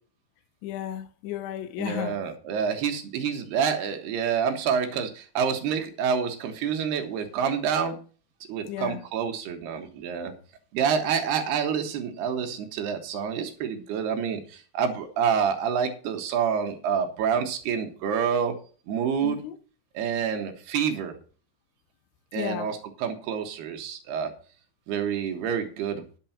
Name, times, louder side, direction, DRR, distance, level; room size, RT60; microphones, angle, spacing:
voice 1, 0.6-2.2 8.7-9.0 19.2-19.6 22.3-22.7, left 12 dB, 80° left, 3.1 m, -33 dB
voice 2, 1.8-8.0 8.5-10.3 10.7-18.5 18.9-19.4 19.9-21.1 22.3-24.3 24.9-26.0, right 7 dB, 65° right, 3.1 m, -27 dB
10.5 x 6.9 x 5.9 m
omnidirectional pair, 5.6 m